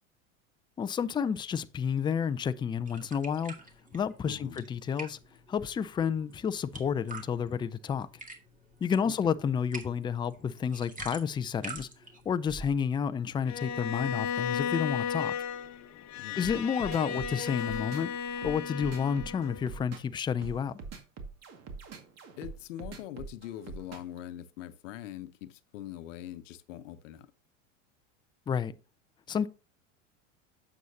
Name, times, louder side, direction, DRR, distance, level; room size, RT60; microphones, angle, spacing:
voice 1, 0.8-3.5 3.9-5.2 5.5-8.1 8.8-11.9 12.3-15.3 16.4-18.1 18.4-20.8 28.5-28.8 29.3-29.5, left 7 dB, 15° left, 0.4 m, -30 dB
sound 1, 2.9-12.7, right 3 dB, 20° right, 1.8 m, -47 dB
voice 2, 4.2-4.7 9.0-9.3 16.2-16.5 22.4-27.3, left 12 dB, 75° left, 0.9 m, -43 dB
Bowed string instrument, 13.5-19.7, left 7 dB, 45° left, 1.1 m, -34 dB
sound 2, 16.4-24.2, right 4 dB, 40° right, 2.0 m, -43 dB
9.1 x 7.2 x 2.7 m
hypercardioid pair, 95°, 38 cm